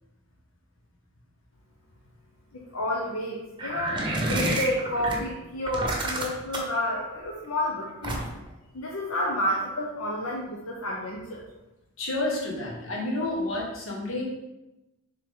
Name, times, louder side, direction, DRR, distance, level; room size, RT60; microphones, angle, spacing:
voice 1, 2.5-8.2 8.7-11.4, left 1 dB, 90° left, -3 dB, 0.9 m, -30 dB
sound 1, 3.6-5.2 5.7-6.8 8.0-8.5, right 1 dB, 25° right, 1.0 m, -28 dB
voice 2, 12.0-14.2, left 2 dB, 65° left, -3 dB, 1.6 m, -30 dB
6.7 x 3.8 x 3.7 m, 0.98 s
head